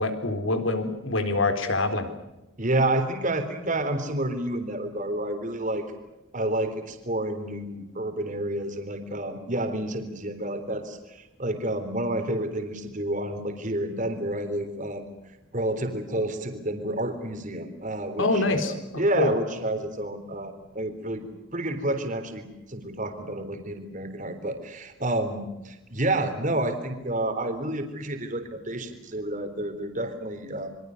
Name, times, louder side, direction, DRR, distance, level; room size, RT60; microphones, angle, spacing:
voice 1, 0.0-2.1 18.2-18.7 19.2-19.3, left 2 dB, 70° left, 8 dB, 4.0 m, -25 dB
voice 2, 2.6-5.9 6.3-15.1 15.5-21.2 21.5-30.7, right 1 dB, 40° right, 7 dB, 3.8 m, -29 dB
27.5 x 24.0 x 6.6 m, 0.96 s
head